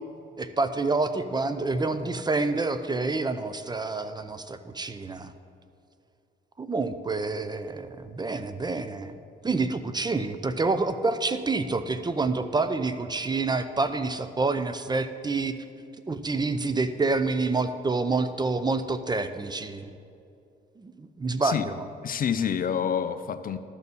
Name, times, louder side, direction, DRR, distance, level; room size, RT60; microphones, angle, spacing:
voice 1, 0.4-5.3 6.6-9.1 9.4-15.5 16.1-19.9 20.8-21.8, right 3 dB, 20° right, 10 dB, 0.5 m, -28 dB
voice 2, 22.0-23.6, left 8 dB, 45° left, 11 dB, 0.5 m, -27 dB
12.0 x 4.1 x 7.0 m, 2.6 s
cardioid pair, 90°, 20 cm